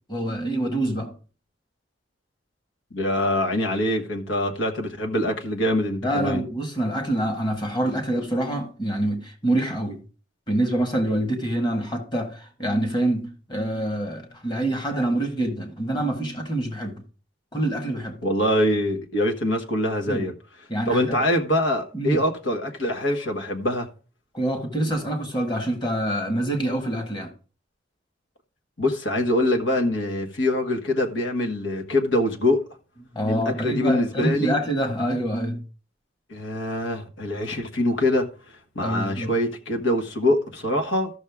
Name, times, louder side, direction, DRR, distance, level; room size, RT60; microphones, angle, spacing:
voice 1, 0.1-1.1 6.0-10.0 10.5-17.0 17.5-18.2 20.1-20.3 20.7-21.2 21.9-22.2 24.3-27.3 33.1-35.6 38.8-39.3, right 1 dB, 25° left, 1.8 m, -26 dB
voice 2, 2.9-6.4 18.2-20.3 20.9-23.9 28.8-32.6 33.3-34.6 36.3-38.3 38.7-41.1, left 1 dB, 85° left, 1.5 m, -24 dB
13.5 x 6.4 x 3.6 m
head